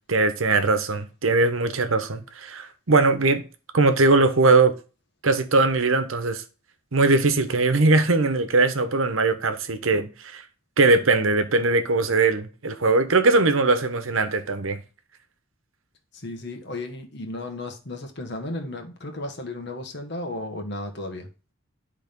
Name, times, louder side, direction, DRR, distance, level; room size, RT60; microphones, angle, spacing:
voice 1, 0.1-3.4 3.7-4.8 5.2-6.4 6.9-10.4 10.8-14.8, right 3 dB, 90° right, 1.1 m, -20 dB
voice 2, 16.1-21.3, left 2 dB, 55° left, 1.5 m, -34 dB
10.5 x 3.7 x 5.3 m
head